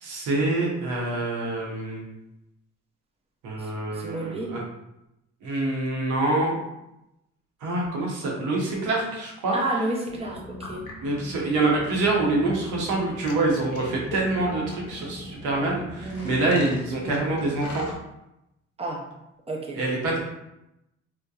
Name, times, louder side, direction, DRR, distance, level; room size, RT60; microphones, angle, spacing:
voice 1, 0.0-2.0 3.4-4.6 5.4-6.6 7.6-9.6 11.0-17.9 19.7-20.2, right 2 dB, 90° right, -3 dB, 0.8 m, -26 dB
voice 2, 3.6-4.6 9.5-10.8 16.0-16.3 18.8-19.0 19.5-19.8, right 2 dB, 20° right, -1 dB, 0.6 m, -31 dB
sound 1, 10.0-17.9, left 2 dB, 80° left, 0.6 m, -40 dB
2.7 x 2.1 x 2.3 m, 0.88 s
cardioid pair, 90°, 30 cm